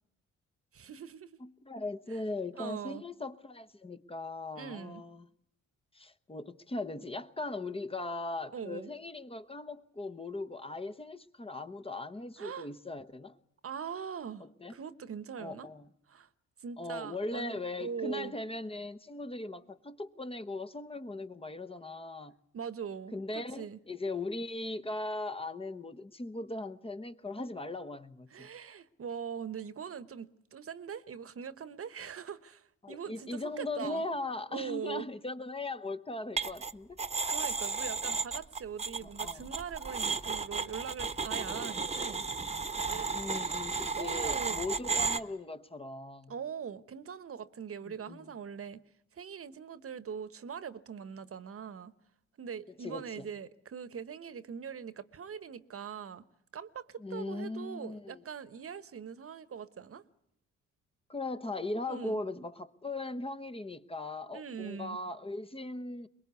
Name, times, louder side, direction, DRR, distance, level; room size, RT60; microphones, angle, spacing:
voice 1, 0.7-1.4 2.1-2.2 2.5-3.0 4.6-5.0 8.5-8.9 12.4-12.7 13.6-15.7 16.1-16.3 16.6-18.3 22.5-23.8 28.3-34.0 34.5-35.1 37.3-42.2 42.8-43.2 44.0-44.6 46.3-48.8 49.1-51.9 52.4-56.2 56.5-60.0 61.9-62.2 64.3-65.0, right 7 dB, 50° right, 1.2 m, -42 dB
voice 2, 1.4-5.2 5.9-13.3 14.4-14.7 15.4-15.9 16.8-22.4 23.1-28.5 32.8-37.0 39.0-39.5 43.1-46.3 48.1-48.3 52.8-53.3 57.0-58.2 61.1-66.1, left 2 dB, 20° left, 1.1 m, -39 dB
sound 1, 36.4-36.7 37.0-45.2, right 4 dB, 20° right, 1.2 m, -33 dB
23.0 x 22.0 x 8.3 m
cardioid pair, 100°, 29 cm